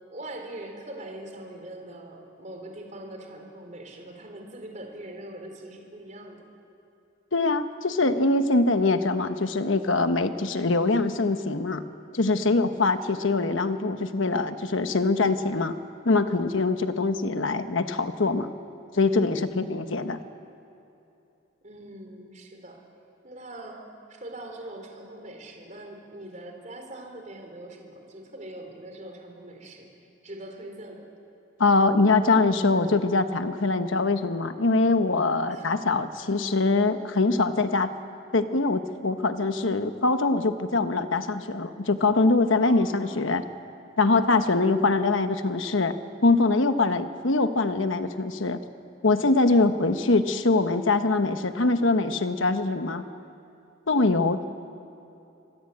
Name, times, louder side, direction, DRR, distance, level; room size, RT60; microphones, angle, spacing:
voice 1, 0.1-6.4 19.6-19.8 21.6-22.8 23.2-23.8 24.1-29.9 30.2-31.1 35.5-35.7 42.4-43.1 53.9-54.2, right 1 dB, 35° right, 2 dB, 4.1 m, -42 dB
voice 2, 7.3-11.8 12.1-15.7 16.0-18.5 18.9-20.2 31.6-37.9 38.3-43.4 44.0-45.9 46.2-48.6 49.0-53.1 53.9-54.5, left 3 dB, 75° left, 9 dB, 1.1 m, -23 dB
26.0 x 21.0 x 8.7 m, 2.9 s
head